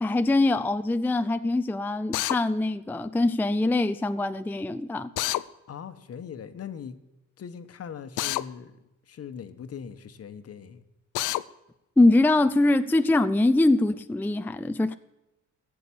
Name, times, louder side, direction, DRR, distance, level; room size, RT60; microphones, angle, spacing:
voice 1, 0.0-5.1 12.0-15.0, left 2 dB, 5° left, 0.5 m, -23 dB
Drill, 2.1-2.4 5.2-5.4 8.2-8.5 11.1-11.4, left 16 dB, 85° left, 0.5 m, -27 dB
voice 2, 5.7-7.0 7.4-10.8, left 7 dB, 55° left, 1.2 m, -40 dB
15.5 x 7.0 x 8.6 m
cardioid pair, 90°, 30 cm